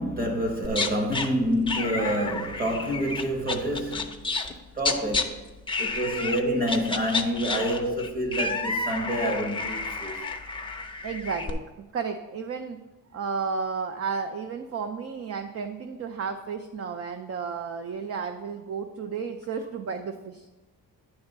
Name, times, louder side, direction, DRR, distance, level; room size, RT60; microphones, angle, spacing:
voice 1, 0.0-4.4 4.7-5.4 5.8-10.3, equal, 25° right, 1.2 m, -28 dB
sound 1, 0.6-1.3 1.7-4.5 4.8-5.2 5.7-6.4 6.7-11.5, left 3 dB, 15° left, 0.5 m, -30 dB
voice 2, 9.9-10.2 11.0-12.8 13.1-20.5, right 5 dB, 40° right, 0.4 m, -33 dB
9.8 x 3.5 x 6.6 m
wide cardioid pair, 175°, 36 cm